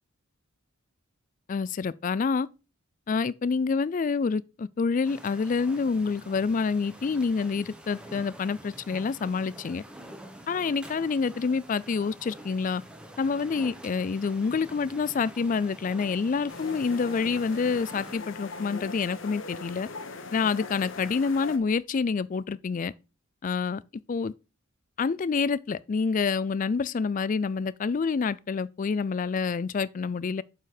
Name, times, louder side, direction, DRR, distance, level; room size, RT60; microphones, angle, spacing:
voice 1, 1.5-2.5 3.1-9.8 10.5-12.8 13.2-19.9 20.3-22.9 23.4-23.8 24.1-24.3 25.0-30.4, left 5 dB, 40° left, 0.3 m, -27 dB
sound 1, 5.0-18.1, right 1 dB, 5° right, 1.0 m, -47 dB
sound 2, 16.5-21.6, left 3 dB, 60° left, 1.0 m, -40 dB
7.8 x 5.5 x 3.9 m
head